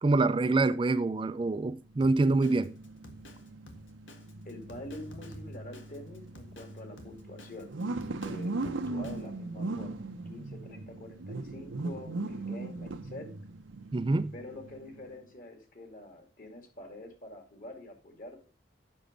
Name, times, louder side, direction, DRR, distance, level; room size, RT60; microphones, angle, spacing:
voice 1, 0.0-2.7 13.9-14.3, right 3 dB, 25° right, 0.4 m, -26 dB
sound 1, 1.8-15.2, right 2 dB, 90° right, 0.8 m, -39 dB
Drum kit, 2.0-9.3, left 1 dB, 80° left, 1.7 m, -52 dB
voice 2, 4.4-7.7 8.2-13.3 14.3-18.4, left 1 dB, 45° left, 2.4 m, -46 dB
8.6 x 6.2 x 5.2 m
head